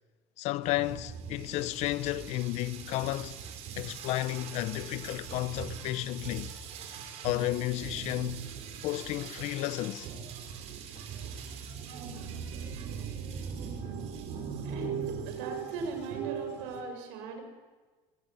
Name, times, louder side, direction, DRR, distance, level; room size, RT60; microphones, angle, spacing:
voice 1, 0.4-3.4 3.8-6.5 7.2-8.4 8.8-10.1, left 17 dB, 65° left, 0.9 m, -32 dB
sound 1, 0.6-16.8, right 7 dB, 60° right, 5.0 m, -40 dB
voice 2, 14.6-17.4, right 4 dB, 80° right, 6.8 m, -39 dB
24.5 x 16.5 x 9.9 m
supercardioid pair, 110°, 12 cm